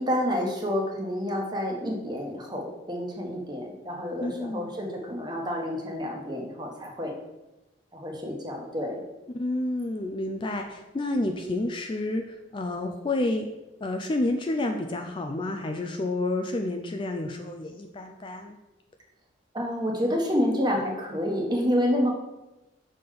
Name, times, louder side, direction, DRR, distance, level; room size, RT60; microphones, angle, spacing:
voice 1, 0.0-7.1 7.9-9.0 19.5-22.1, equal, 25° right, 0 dB, 1.1 m, -28 dB
voice 2, 4.2-4.7 9.3-13.5 13.8-18.6, left 2 dB, 25° left, 4 dB, 0.4 m, -30 dB
5.9 x 3.7 x 5.1 m, 0.99 s
head